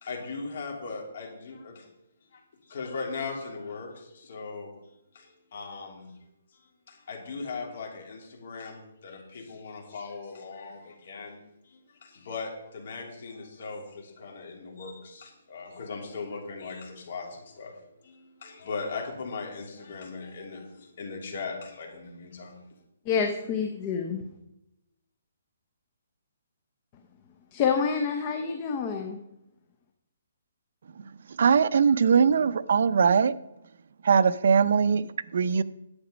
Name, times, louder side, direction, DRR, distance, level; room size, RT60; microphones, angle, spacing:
voice 1, 0.0-1.8 2.3-4.7 5.1-6.1 6.9-11.4 11.6-17.8 18.0-22.6, left 4 dB, 45° left, 2.9 m, -39 dB
voice 2, 23.1-24.2 27.5-29.2, left 6 dB, 20° left, 0.7 m, -27 dB
voice 3, 31.4-33.4 34.0-35.6, right 6 dB, 55° right, 0.5 m, -21 dB
10.5 x 8.1 x 5.1 m
hypercardioid pair, 175°, 0 cm